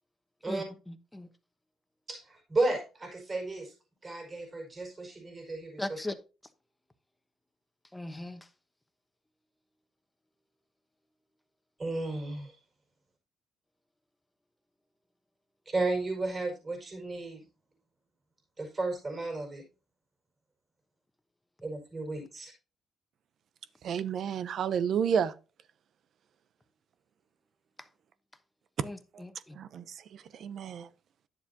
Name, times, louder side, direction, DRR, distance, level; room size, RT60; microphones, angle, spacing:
voice 1, 0.5-1.3 5.8-6.2 7.9-8.4 28.8-29.6, left 1 dB, 10° left, 1.1 m, -39 dB
voice 2, 2.1-3.7 4.0-6.0 11.8-12.6 15.7-17.4 18.6-19.6 21.6-22.5, right 2 dB, 30° right, 4.8 m, -33 dB
voice 3, 23.8-25.3 29.6-29.8 30.4-30.9, right 7 dB, 65° right, 0.7 m, -30 dB
10.5 x 7.2 x 2.8 m
cardioid pair, 90°, 0 cm